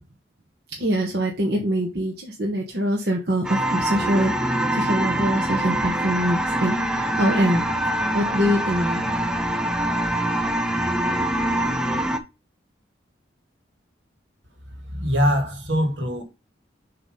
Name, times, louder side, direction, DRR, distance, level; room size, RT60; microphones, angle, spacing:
voice 1, 0.8-7.7 8.1-9.1, equal, 55° right, 1.1 m, -24 dB
sound 1, 3.4-12.2, right 1 dB, 5° right, 0.5 m, -24 dB
voice 2, 14.9-16.2, equal, 75° right, 1.8 m, -22 dB
6.9 x 3.0 x 5.3 m
head